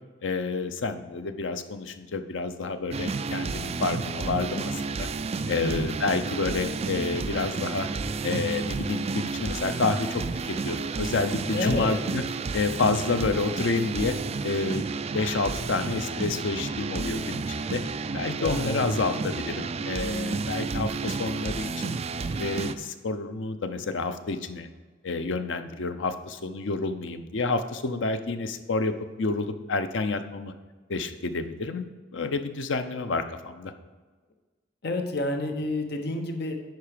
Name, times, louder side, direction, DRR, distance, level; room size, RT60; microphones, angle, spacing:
voice 1, 0.2-5.1 5.5-7.9 8.2-12.2 12.5-14.1 14.4-14.9 15.1-17.8 18.1-22.0 22.4-24.7 25.0-30.5 30.9-33.7, left 3 dB, 80° left, 9 dB, 0.6 m, -29 dB
sound 1, 2.9-22.7, right 4 dB, 35° right, 0.4 m, -31 dB
voice 2, 11.5-12.0 18.4-18.9 34.8-36.6, left 2 dB, 60° left, 5 dB, 1.0 m, -29 dB
10.5 x 4.6 x 5.0 m, 1.4 s
head